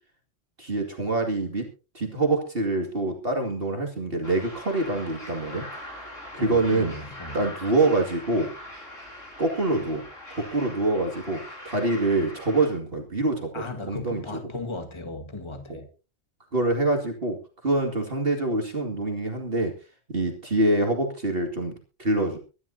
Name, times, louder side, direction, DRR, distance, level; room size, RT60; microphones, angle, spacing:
voice 1, 0.6-1.7 1.9-5.6 6.3-6.9 7.3-8.5 9.4-10.0 10.3-14.2 15.7-15.8 16.5-17.4 17.6-19.7 20.1-21.7 22.0-22.4, right 2 dB, 45° right, 2.6 m, -25 dB
sound 1, 4.2-12.7, left 1 dB, 70° left, 5.4 m, -42 dB
voice 2, 6.4-7.4 13.5-15.9, left 3 dB, 20° left, 1.8 m, -37 dB
24.0 x 11.5 x 2.8 m
omnidirectional pair, 1.3 m